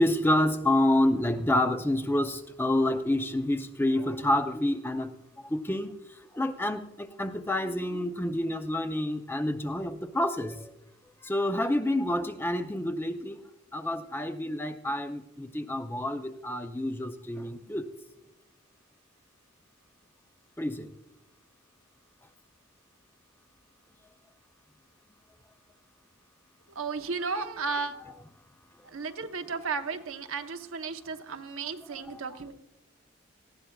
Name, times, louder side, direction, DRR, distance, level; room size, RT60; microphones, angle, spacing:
voice 1, 0.0-5.1 5.4-5.9 6.3-10.7 11.2-13.4 13.7-17.9 20.6-20.9 31.6-31.7 32.0-32.2, left 1 dB, 10° left, 8 dB, 0.5 m, -28 dB
voice 2, 26.8-27.9 28.9-32.5, right 4 dB, 85° right, 6 dB, 0.9 m, -34 dB
18.5 x 15.0 x 2.3 m, 0.96 s
head